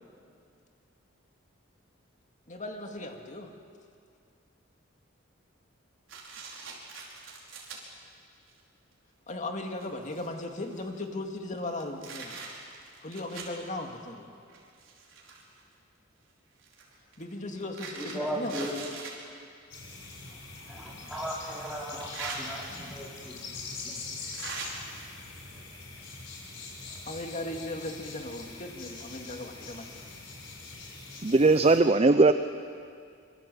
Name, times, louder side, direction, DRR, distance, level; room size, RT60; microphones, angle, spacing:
voice 1, 2.5-3.5 9.3-12.4 13.0-14.3 17.2-18.8 27.0-30.1, left 2 dB, 35° left, 3 dB, 2.2 m, -37 dB
sound 1, 6.1-7.8 8.5-8.6 9.3-9.4 9.7-11.1 11.6-13.6 14.5-15.6 16.6-19.2 20.4-20.5 21.9-22.4 23.4-23.5 24.3-24.7, right 5 dB, 70° right, 4.9 m, -42 dB
voice 2, 18.1-18.7 20.7-23.3, right 1 dB, ahead, -4 dB, 4.9 m, -36 dB
sound 2, 19.7-31.8, left 3 dB, 70° left, 5.8 m, -43 dB
voice 3, 31.2-32.3, right 3 dB, 30° right, 10 dB, 0.6 m, -19 dB
25.5 x 25.0 x 8.0 m, 2.3 s
head